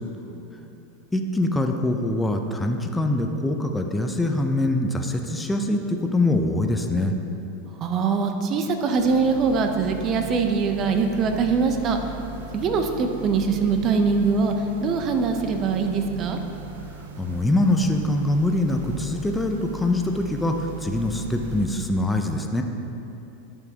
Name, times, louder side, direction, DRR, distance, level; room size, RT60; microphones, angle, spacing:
voice 1, 0.2-0.7 7.7-12.0 12.5-14.5 14.8-16.4, right 5 dB, 40° right, 5 dB, 0.8 m, -23 dB
voice 2, 1.1-7.2 17.2-22.6, left 1 dB, 10° left, 4 dB, 0.7 m, -24 dB
sound 1, 8.9-21.7, right 3 dB, 75° right, 0.7 m, -39 dB
11.5 x 7.0 x 2.9 m, 2.9 s
hypercardioid pair, 90°, 0 cm